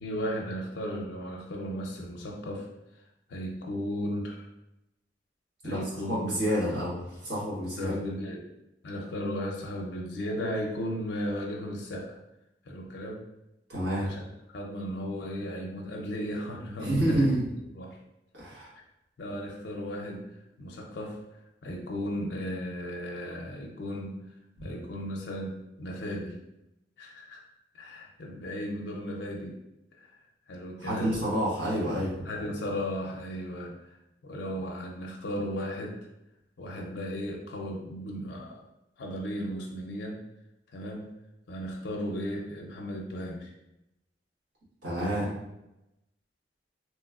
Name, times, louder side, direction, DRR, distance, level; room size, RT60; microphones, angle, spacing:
voice 1, 0.0-2.7 3.3-4.5 5.6-6.4 7.8-8.5 8.8-12.2 12.7-13.2 14.0-14.2 14.5-17.3 17.7-18.0 19.2-20.3 20.6-21.2 21.6-24.2 24.6-26.4 27.0-27.4 27.7-29.6 30.0-30.1 30.5-31.2 32.2-33.9 34.2-36.0 36.6-38.6 39.0-40.2 40.7-41.1 41.5-43.5 45.0-45.3, equal, 85° left, -1 dB, 0.5 m, -35 dB
voice 2, 5.6-7.9 13.7-14.2 16.8-17.4 18.3-18.7 24.6-24.7 30.8-32.1 44.8-45.2, right 1 dB, 80° right, -7 dB, 1.4 m, -28 dB
3.0 x 3.0 x 2.3 m, 0.90 s
head